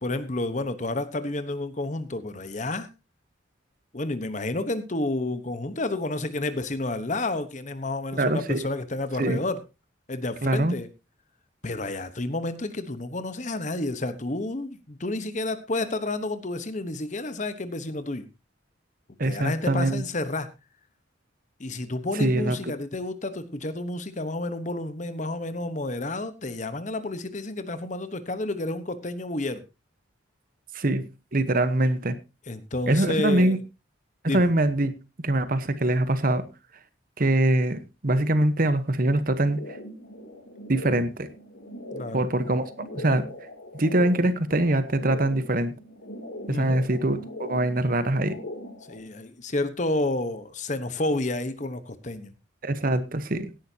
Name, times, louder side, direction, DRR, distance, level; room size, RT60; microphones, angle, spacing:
voice 1, 0.0-2.9 3.9-9.6 10.1-10.9 11.6-18.3 19.2-20.5 21.6-29.6 32.5-33.6 34.2-34.5 41.9-42.2 46.5-46.8 48.9-52.3, left 2 dB, 40° left, 12 dB, 1.1 m, -30 dB
voice 2, 8.2-8.6 9.2-9.4 10.4-10.8 19.2-20.0 22.2-22.6 30.7-31.1 31.3-32.1 32.9-33.6 34.2-34.9 35.2-36.4 37.2-39.6 40.7-41.3 42.1-42.6 42.9-43.3 43.7-45.7 46.5-48.4 52.6-53.5, right 1 dB, 45° right, 12 dB, 1.0 m, -23 dB
sound 1, 39.5-49.0, left 1 dB, 90° left, 3.2 m, -41 dB
17.0 x 10.5 x 2.8 m, 0.27 s
head